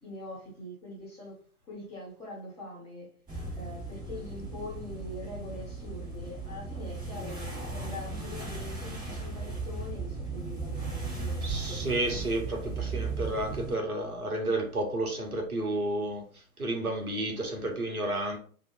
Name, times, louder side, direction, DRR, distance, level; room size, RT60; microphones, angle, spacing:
voice 1, 0.0-1.4 1.7-3.2 3.6-11.5, left 1 dB, 15° left, 1.1 m, -43 dB
sound 1, 3.3-13.7, right 3 dB, 10° right, 1.2 m, -36 dB
voice 2, 11.4-16.2 16.6-18.4, right 1 dB, 90° right, 1.0 m, -31 dB
2.8 x 2.6 x 2.4 m
figure-of-eight pair, 120°, 43 cm